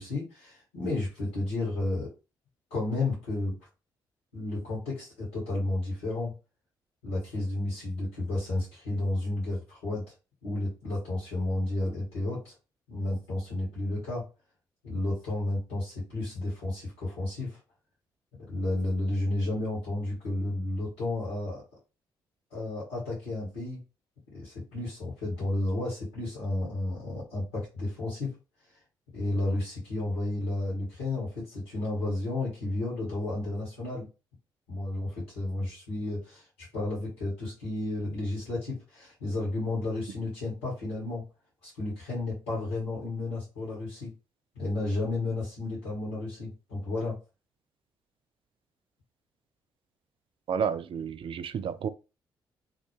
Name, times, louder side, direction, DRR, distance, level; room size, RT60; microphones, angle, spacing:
voice 1, 0.0-2.1 2.7-3.6 4.3-6.3 7.0-10.0 10.4-12.5 12.9-14.3 14.8-17.6 18.5-21.6 22.5-23.8 24.3-28.4 29.1-34.1 34.7-41.2 41.6-44.1 44.5-47.2, left 2 dB, 85° left, 1.4 m, -32 dB
voice 2, 50.5-51.9, right 7 dB, 50° right, 0.4 m, -31 dB
2.7 x 2.2 x 3.0 m
hypercardioid pair, 40°, 11 cm